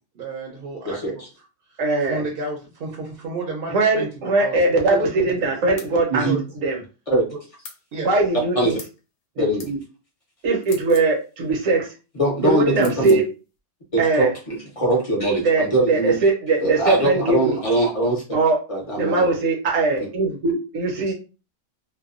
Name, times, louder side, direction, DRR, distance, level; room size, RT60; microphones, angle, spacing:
voice 1, 0.1-1.0 2.0-4.6 4.9-5.5 6.2-6.6 7.9-8.1 19.9-20.1, right 3 dB, 55° right, -1 dB, 0.8 m, -32 dB
voice 2, 0.8-1.3 6.1-6.4 7.1-7.3 8.6-8.8 9.4-9.7 12.2-13.2 13.9-16.2 16.6-18.2 18.7-19.3 21.1-21.2, right 1 dB, 35° left, -2 dB, 0.5 m, -22 dB
voice 3, 1.8-2.2 3.7-6.3 6.6-6.8 8.0-8.7 9.4-9.8 10.4-11.9 12.4-13.2 14.0-14.3 15.4-17.6 18.3-18.6 19.0-21.1, right 3 dB, 75° right, 1 dB, 1.1 m, -20 dB
sound 1, 5.8-6.0 7.6-7.8 8.8-9.0 9.6-9.7 10.6-11.1 12.8-13.2, left 5 dB, 65° left, 0.8 m, -41 dB
2.6 x 2.1 x 2.4 m, 0.32 s
omnidirectional pair, 1.4 m